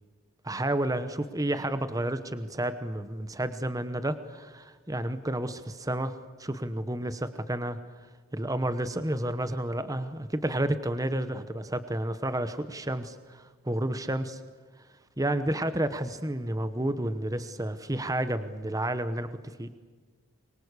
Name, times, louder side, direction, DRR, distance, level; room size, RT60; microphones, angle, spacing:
voice 1, 0.4-7.8 8.3-14.4 15.2-19.7, right 1 dB, 15° right, 11 dB, 1.0 m, -31 dB
24.5 x 23.5 x 8.3 m, 1.4 s
head